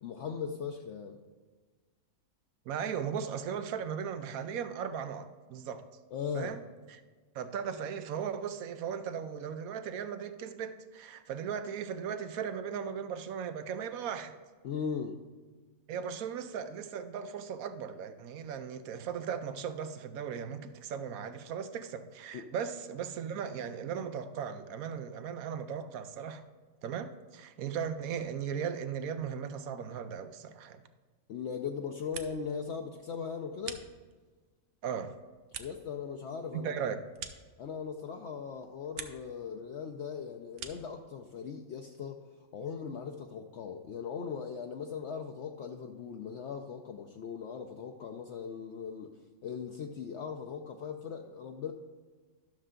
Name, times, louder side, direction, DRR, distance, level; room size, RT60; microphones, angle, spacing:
voice 1, 0.0-1.2 6.1-6.6 14.6-15.2 22.3-22.4 31.3-33.8 35.6-36.8 37.6-42.2 42.5-51.7, left 6 dB, 65° left, 0.8 m, -39 dB
voice 2, 2.7-5.9 6.3-6.6 6.9-7.0 7.3-14.3 15.9-26.4 26.8-30.8 34.8-35.1 36.5-37.0, right 7 dB, 85° right, 1.1 m, -37 dB
sound 1, 31.8-32.6 32.9-34.4 34.8-38.1 38.4-39.4 39.7-41.0, right 7 dB, 60° right, 1.0 m, -47 dB
12.0 x 6.6 x 3.7 m
omnidirectional pair, 1.5 m